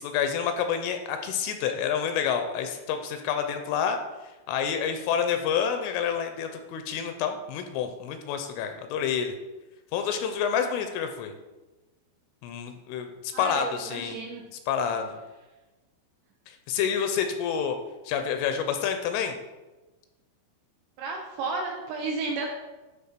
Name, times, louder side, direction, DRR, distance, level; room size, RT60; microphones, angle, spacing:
voice 1, 0.0-4.0 4.2-9.3 9.9-11.3 12.4-14.2 14.7-15.2 16.5-17.8 18.1-19.4, left 7 dB, 85° left, 6 dB, 3.0 m, -28 dB
voice 2, 13.3-14.4 21.0-22.5, right 3 dB, 75° right, 0 dB, 2.7 m, -32 dB
12.0 x 4.2 x 5.8 m, 1.1 s
omnidirectional pair, 5.9 m